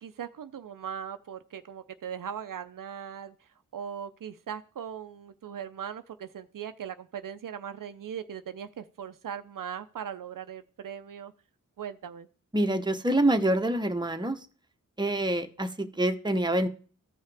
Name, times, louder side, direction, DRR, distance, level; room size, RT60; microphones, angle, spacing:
voice 1, 0.0-11.3 11.8-12.3, right 8 dB, 75° right, 10 dB, 0.5 m, -39 dB
voice 2, 12.5-14.4 15.0-16.7, right 1 dB, 15° right, 6 dB, 0.9 m, -26 dB
14.0 x 5.6 x 3.4 m, 0.40 s
wide cardioid pair, 65°, 33 cm